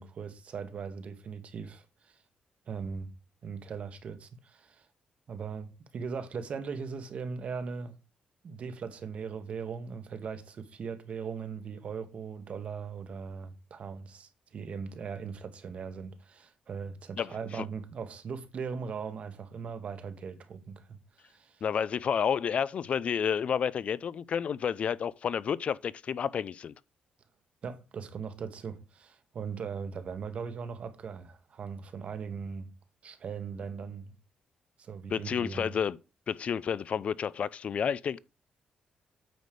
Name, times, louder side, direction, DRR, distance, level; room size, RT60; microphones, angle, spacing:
voice 1, 0.0-2.2 2.7-3.1 3.4-4.9 5.3-8.0 8.4-21.6 27.6-32.7 33.0-34.1 34.8-35.7, right 6 dB, 55° right, 1.3 m, -39 dB
voice 2, 17.2-17.6 21.6-26.7 35.1-36.0 36.3-38.2, left 7 dB, 50° left, 0.4 m, -30 dB
9.2 x 3.2 x 6.7 m
cardioid pair, 105°, 3 cm